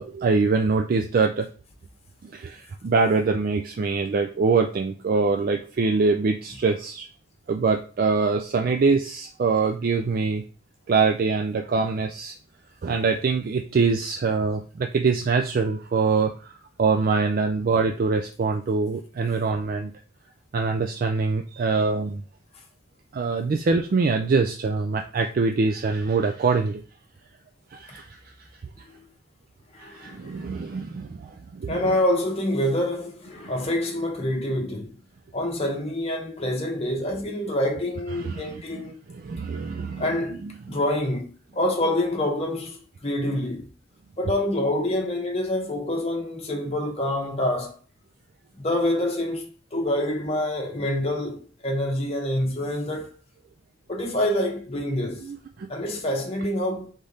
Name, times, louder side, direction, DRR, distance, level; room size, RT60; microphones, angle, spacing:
voice 1, 0.0-1.5 2.2-7.1 7.5-10.4 10.9-12.4 12.8-16.5 16.8-19.9 20.5-22.2 23.1-26.8 27.7-28.2 29.8-31.8 38.1-38.6 39.1-40.1 40.4-40.8 55.2-55.7, right 4 dB, 45° right, 0.3 m, -24 dB
voice 2, 29.7-30.4 31.7-34.9 35.3-39.0 40.0-40.4 40.7-43.7 44.2-47.8 48.5-53.1 53.9-55.3 55.7-56.9, left 1 dB, 30° left, 1.0 m, -26 dB
3.7 x 3.4 x 4.0 m
head